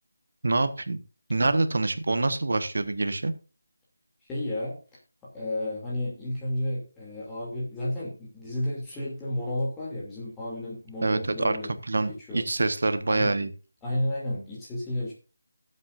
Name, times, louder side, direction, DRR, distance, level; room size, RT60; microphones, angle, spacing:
voice 1, 0.4-1.0 1.3-3.3 11.0-13.5, right 2 dB, 55° right, 11 dB, 1.3 m, -26 dB
voice 2, 4.3-4.8 5.2-11.7 12.3-12.4 13.1-13.4 13.8-15.1, left 1 dB, 10° left, -6 dB, 2.7 m, -32 dB
18.0 x 7.8 x 2.5 m, 0.33 s
figure-of-eight pair, 160°, 0 cm